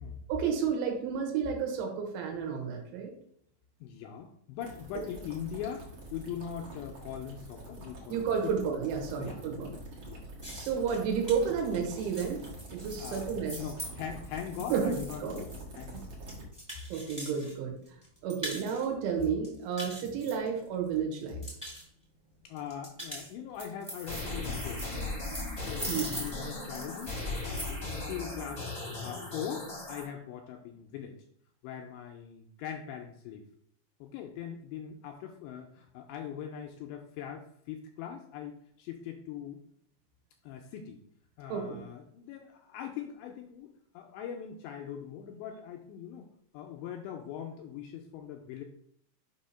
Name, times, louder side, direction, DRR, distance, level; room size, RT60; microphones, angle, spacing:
voice 1, 0.3-3.1 4.9-5.0 8.1-9.7 10.5-12.4 12.7-13.6 14.7-15.4 15.9-16.0 16.9-17.7 18.2-21.4 25.9-26.2 41.5-41.8, right 6 dB, 80° right, 1 dB, 3.3 m, -31 dB
voice 2, 3.8-8.5 9.2-10.2 13.0-13.3 13.5-16.1 20.0-20.2 22.4-24.8 25.6-31.2 31.6-33.5 34.0-39.6 40.4-41.0 41.4-46.3 46.5-48.6, left 9 dB, 85° left, 2 dB, 2.6 m, -41 dB
sound 1, 4.6-16.4, right 1 dB, 65° right, 1.4 m, -46 dB
sound 2, 10.4-17.5 17.8-18.8 19.2-20.9 21.2-21.8 22.6-27.9, equal, 10° right, 0.8 m, -42 dB
sound 3, 24.0-30.0, left 2 dB, 45° left, 0.7 m, -37 dB
6.9 x 2.8 x 5.5 m, 0.68 s
omnidirectional pair, 5.4 m